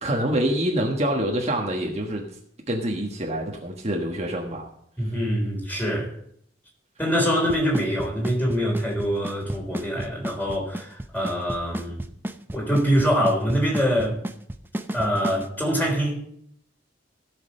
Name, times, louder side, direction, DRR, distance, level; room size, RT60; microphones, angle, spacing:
voice 1, 0.0-2.3 2.7-4.7, right 1 dB, 35° right, 1.4 m, -26 dB
voice 2, 5.0-6.1 7.0-12.0 12.5-14.2 14.9-16.3, equal, 10° left, 3.9 m, -24 dB
Drum kit / Snare drum / Bass drum, 7.5-15.5, right 1 dB, 10° right, 0.7 m, -32 dB
16.5 x 6.5 x 5.4 m
head